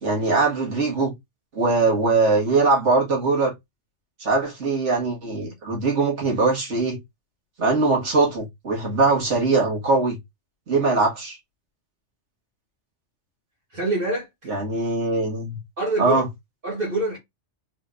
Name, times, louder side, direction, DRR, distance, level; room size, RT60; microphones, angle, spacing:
voice 1, 0.0-1.1 1.6-3.5 4.2-7.0 7.6-10.2 10.7-11.4 14.5-15.6 16.0-16.3, right 3 dB, 70° right, 2.0 m, -21 dB
voice 2, 13.7-14.5 15.8-16.2 16.6-17.2, right 2 dB, 45° right, 1.8 m, -25 dB
4.0 x 3.9 x 2.5 m
omnidirectional pair, 1.3 m